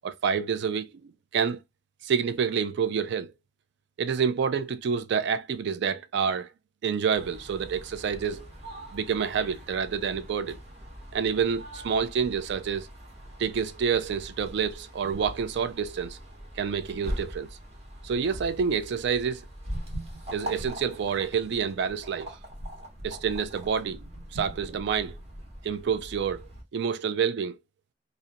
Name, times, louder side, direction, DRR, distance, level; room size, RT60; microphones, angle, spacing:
voice 1, 0.0-1.6 2.0-3.3 4.0-6.5 6.8-8.5 8.9-10.6 11.1-12.9 13.4-16.2 16.6-17.5 18.0-19.5 20.3-22.4 23.0-24.0 24.3-25.2 25.6-26.4 26.7-27.6, right 6 dB, 65° right, 0.3 m, -28 dB
sound 1, 7.1-26.6, equal, 35° right, 1.0 m, -41 dB
2.5 x 2.1 x 2.6 m
head